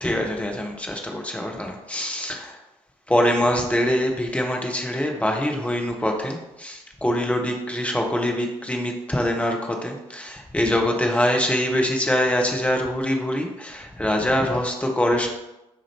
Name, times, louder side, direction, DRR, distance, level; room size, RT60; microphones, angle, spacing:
voice 1, 0.0-2.5 3.1-15.3, left 1 dB, 5° left, 1 dB, 0.8 m, -24 dB
6.6 x 2.6 x 2.9 m, 0.95 s
figure-of-eight pair, 45°, 18 cm